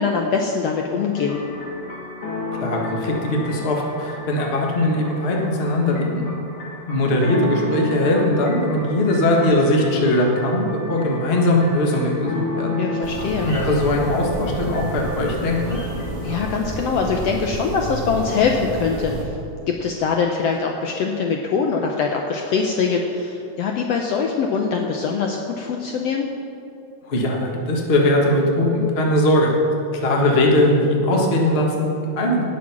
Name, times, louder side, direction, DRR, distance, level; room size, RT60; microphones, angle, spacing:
voice 1, 0.0-1.4 12.8-13.5 16.2-19.1 19.7-26.3, left 5 dB, 75° left, 2 dB, 1.6 m, -23 dB
sound 1, 1.1-17.2, left 2 dB, 90° left, 3.3 m, -33 dB
voice 2, 2.5-6.2 6.9-12.8 13.4-15.8 27.0-29.5 29.9-32.4, left 1 dB, 35° left, -1 dB, 1.0 m, -20 dB
sound 2, 13.0-19.2, right 1 dB, 20° right, 1.0 m, -29 dB
18.0 x 6.3 x 6.0 m, 2.6 s
omnidirectional pair, 3.5 m